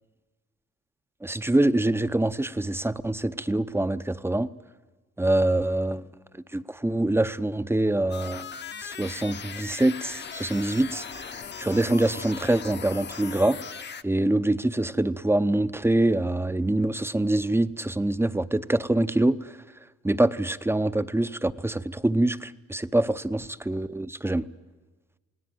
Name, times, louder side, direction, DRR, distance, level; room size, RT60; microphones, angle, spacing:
voice 1, 1.2-4.5 5.2-6.1 6.5-8.5 8.8-13.6 14.0-19.5 20.0-24.5, right 1 dB, 10° right, 0.8 m, -25 dB
sound 1, 8.1-14.0, left 6 dB, 35° left, 1.0 m, -39 dB
28.0 x 19.0 x 9.3 m
cardioid pair, 90°, 30 cm